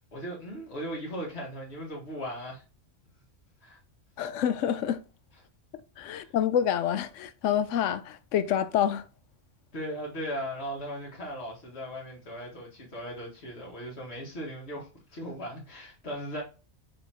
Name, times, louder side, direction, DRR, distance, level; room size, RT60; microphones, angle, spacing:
voice 1, 0.1-2.6 3.6-3.8 6.1-6.3 9.7-16.4, equal, 60° left, 2.1 m, -38 dB
voice 2, 4.2-5.0 6.0-9.0, left 9 dB, 85° left, 1.0 m, -27 dB
6.1 x 5.4 x 2.9 m
omnidirectional pair, 1.2 m